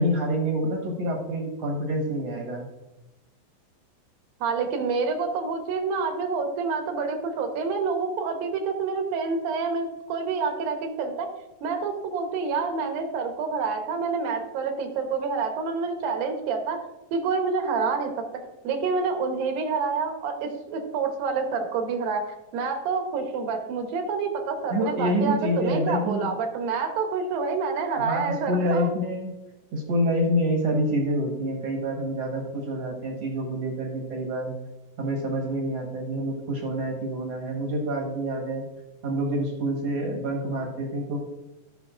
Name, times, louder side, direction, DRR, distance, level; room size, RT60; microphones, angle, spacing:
voice 1, 0.0-2.7 24.7-26.3 28.1-29.3 29.7-34.5 35.0-38.7 39.0-41.2, equal, 55° right, 0 dB, 2.1 m, -27 dB
voice 2, 4.4-11.3 11.6-16.8 17.1-18.1 18.6-28.9, right 5 dB, 75° right, 4 dB, 2.9 m, -28 dB
14.5 x 6.3 x 2.5 m, 1.0 s
omnidirectional pair, 4.2 m